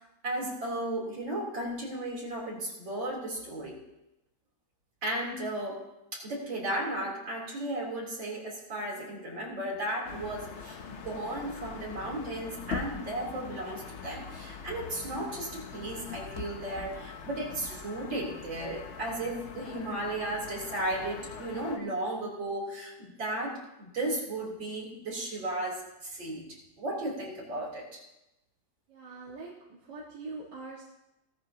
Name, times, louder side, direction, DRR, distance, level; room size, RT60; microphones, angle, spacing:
voice 1, 0.2-3.8 5.0-5.8 6.1-26.4 26.8-28.0, right 1 dB, 75° right, -3 dB, 4.3 m, -35 dB
sound 1, 10.1-21.8, left 5 dB, 50° left, 0.9 m, -42 dB
voice 2, 28.9-30.8, right 3 dB, 60° right, -6 dB, 2.5 m, -43 dB
18.0 x 13.5 x 2.9 m, 0.93 s
omnidirectional pair, 2.0 m